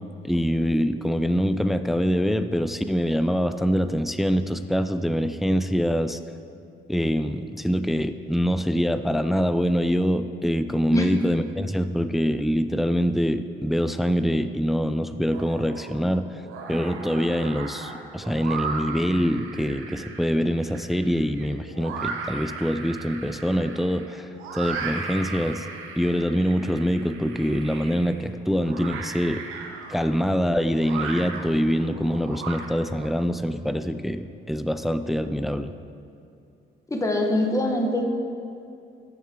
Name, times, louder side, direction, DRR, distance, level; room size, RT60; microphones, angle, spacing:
voice 1, 0.2-6.2 6.9-16.3 16.7-25.7 26.0-29.4 29.9-35.7, equal, ahead, 10 dB, 0.3 m, -24 dB
sound 1, 15.3-16.0 16.4-33.1, right 5 dB, 90° right, 0.9 m, -36 dB
voice 2, 36.9-38.0, left 1 dB, 15° left, 2 dB, 1.2 m, -24 dB
13.5 x 6.5 x 3.7 m, 2.6 s
cardioid pair, 90°, 20 cm